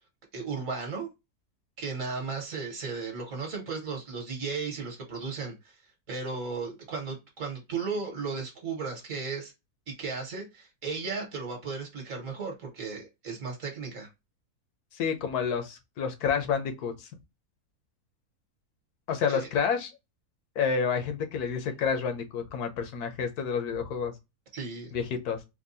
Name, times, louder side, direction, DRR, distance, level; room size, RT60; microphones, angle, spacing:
voice 1, 0.3-1.1 1.8-5.8 6.1-9.5 9.9-14.1 19.3-19.5 24.5-24.9, right 4 dB, 55° right, 1.5 m, -35 dB
voice 2, 14.9-17.1 19.1-19.9 20.6-24.1 24.9-25.4, left 6 dB, 85° left, 1.3 m, -29 dB
4.5 x 2.3 x 2.6 m
omnidirectional pair, 1.6 m